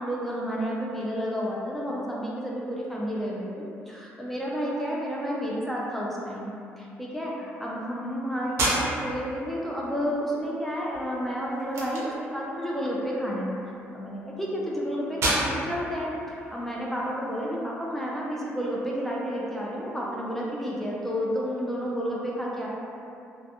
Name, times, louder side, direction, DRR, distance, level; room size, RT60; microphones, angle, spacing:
voice 1, 0.0-3.5 3.9-13.6 13.9-22.7, equal, 5° left, -5 dB, 0.3 m, -31 dB
sound 1, 8.4-17.4, right 1 dB, 60° right, 0.6 m, -33 dB
2.2 x 2.1 x 2.7 m, 2.7 s
cardioid pair, 110°, 5 cm